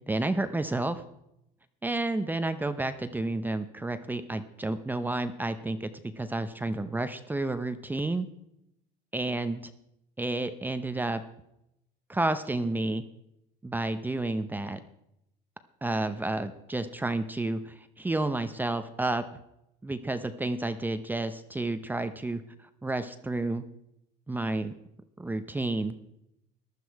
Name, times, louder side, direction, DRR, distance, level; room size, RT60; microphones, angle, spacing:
voice 1, 0.1-1.0 1.8-5.9 6.2-8.3 9.1-9.7 10.2-11.2 12.1-13.0 13.6-14.8 15.8-19.4 19.8-22.4 22.8-23.6 24.3-24.7 25.2-26.0, right 2 dB, 10° right, 10 dB, 0.7 m, -30 dB
15.0 x 11.5 x 4.7 m, 0.81 s
cardioid pair, 125°, 19 cm